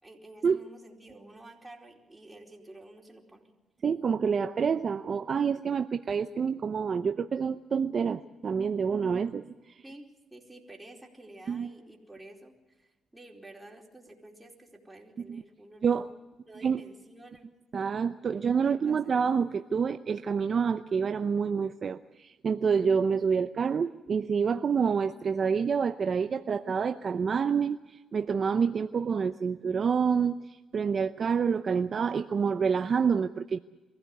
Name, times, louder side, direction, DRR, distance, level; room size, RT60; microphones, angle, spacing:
voice 1, 0.0-3.5 9.8-16.2 16.4-17.5 18.3-19.1, right 1 dB, 10° right, -1 dB, 4.5 m, -51 dB
voice 2, 3.8-9.5 11.5-11.7 15.3-15.4 15.8-16.1 16.6-16.8 17.7-27.8 28.1-30.4 30.7-33.6, right 6 dB, 45° right, 8 dB, 0.7 m, -27 dB
24.0 x 15.5 x 8.4 m, 1.1 s
cardioid pair, 90°, 0 cm